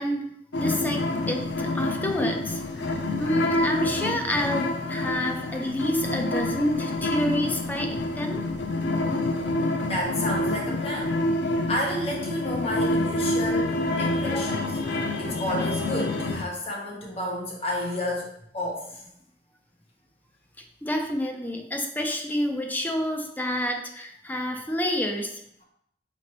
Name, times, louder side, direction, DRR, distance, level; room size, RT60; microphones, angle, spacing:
voice 1, 0.0-8.4 14.3-14.4 20.8-25.4, left 1 dB, 10° left, 3 dB, 0.4 m, -28 dB
sound 1, 0.5-16.4, left 2 dB, 80° left, 0.5 m, -27 dB
voice 2, 9.8-11.2 11.7-19.0, left 1 dB, 35° left, -2 dB, 0.9 m, -31 dB
4.9 x 3.0 x 2.9 m, 0.74 s
head